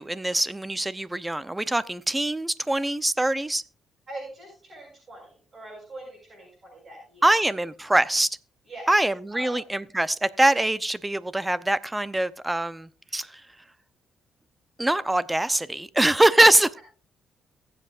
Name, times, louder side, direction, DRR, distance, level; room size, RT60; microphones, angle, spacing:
voice 1, 0.0-3.6 7.2-8.3 8.9-13.3 14.8-16.8, right 1 dB, 10° right, 0.7 m, -23 dB
voice 2, 4.1-7.3 8.6-8.9 9.3-9.6, right 1 dB, 40° right, 6.8 m, -42 dB
23.0 x 7.7 x 2.5 m
cardioid pair, 90°, 0 cm